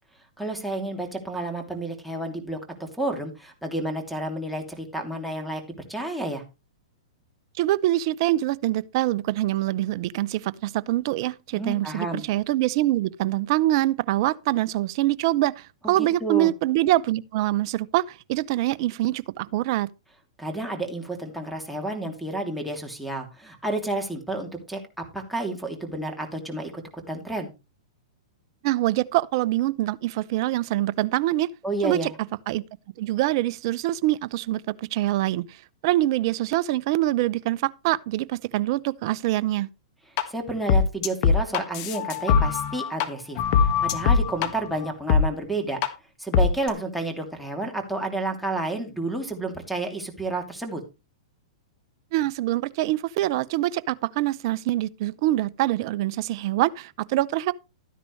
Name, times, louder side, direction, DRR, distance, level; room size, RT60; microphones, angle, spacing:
voice 1, 0.4-5.6 5.9-6.4 11.6-12.2 15.8-16.5 20.4-27.5 31.6-32.2 40.3-45.8 46.2-50.8, right 2 dB, ahead, 2.8 m, -30 dB
voice 2, 7.6-19.9 28.6-31.5 31.8-32.0 32.5-32.6 33.0-35.4 35.8-39.7 52.1-57.5, right 15 dB, 50° right, 0.6 m, -24 dB
sound 1, 40.2-40.3 40.7-43.1 43.4-44.5 45.1-45.2 45.8-45.9 46.3-46.7, left 6 dB, 45° left, 1.7 m, -21 dB
13.0 x 9.9 x 3.2 m
hypercardioid pair, 110°, 3 cm